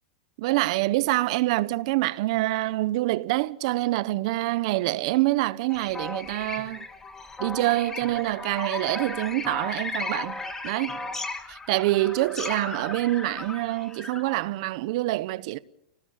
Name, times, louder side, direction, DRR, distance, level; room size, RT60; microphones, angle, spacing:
voice 1, 0.4-6.9 7.4-11.0 11.5-15.6, right 18 dB, 50° right, 0.9 m, -26 dB
sound 1, 5.7-14.4, left 3 dB, 10° left, 1.6 m, -36 dB
28.0 x 18.5 x 7.3 m
supercardioid pair, 155°, 4 cm